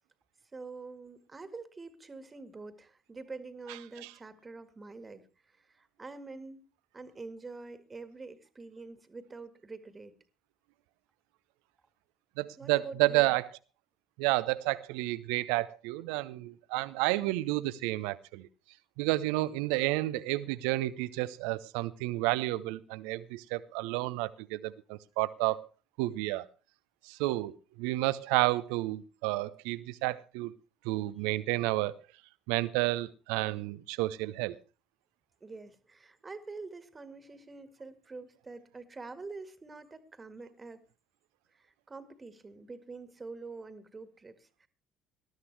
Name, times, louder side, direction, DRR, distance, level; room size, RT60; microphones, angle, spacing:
voice 1, 0.5-6.6 6.9-10.1 12.6-13.4 35.4-40.8 41.5-44.7, right 3 dB, 25° right, 11 dB, 1.8 m, -46 dB
voice 2, 12.4-13.5 14.2-18.5 19.0-25.7 26.0-26.5 27.0-30.5 30.8-32.0 32.5-34.6, right 19 dB, 70° right, 17 dB, 0.6 m, -31 dB
19.5 x 12.5 x 3.3 m, 0.34 s
figure-of-eight pair, 55°, 0 cm